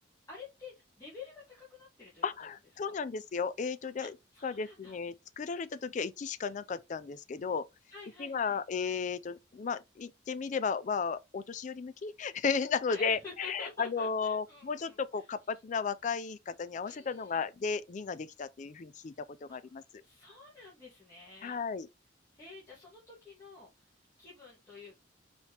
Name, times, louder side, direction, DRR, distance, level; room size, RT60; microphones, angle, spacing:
voice 1, 0.3-2.3 2.8-3.0 4.0-5.0 7.9-8.6 12.9-15.3 16.8-17.4 19.5-19.6 20.0-21.6 22.3-23.7 24.2-25.0, left 3 dB, 15° left, 1.4 m, -50 dB
voice 2, 2.2-4.1 4.4-7.7 8.2-19.8 21.4-21.9, left 5 dB, 40° left, 0.3 m, -34 dB
4.3 x 2.9 x 3.3 m
head